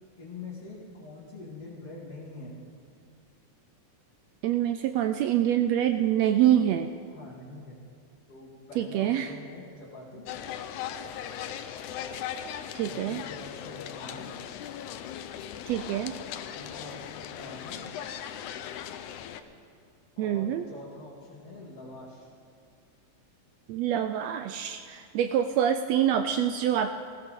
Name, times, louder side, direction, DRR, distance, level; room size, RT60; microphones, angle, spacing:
voice 1, 0.2-2.5 7.1-7.8 8.3-10.2 12.8-14.3 16.5-17.8 20.2-22.3, left 3 dB, 50° left, -8 dB, 2.8 m, -44 dB
voice 2, 4.4-6.9 8.8-9.3 12.7-13.2 15.7-16.1 20.2-20.6 23.7-26.9, right 10 dB, 80° right, 8 dB, 1.5 m, -25 dB
sound 1, 10.3-19.4, left 9 dB, 85° left, 2.1 m, -38 dB
19.5 x 16.0 x 3.7 m, 2.2 s
omnidirectional pair, 3.4 m